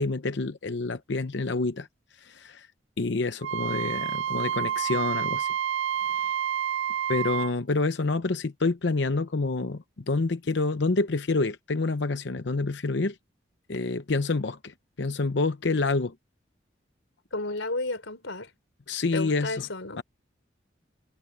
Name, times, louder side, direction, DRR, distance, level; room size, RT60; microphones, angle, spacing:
voice 1, 0.0-1.9 2.2-2.7 3.0-5.5 7.1-13.2 13.7-16.1 18.9-19.7 20.0-20.1, left 3 dB, 70° left, 0.8 m, -27 dB
Wind instrument woodwind instrument, 3.4-7.5, right 9 dB, 85° right, 0.4 m, -29 dB
voice 2, 17.3-18.5 19.1-20.0, left 2 dB, 90° left, 4.7 m, -32 dB
head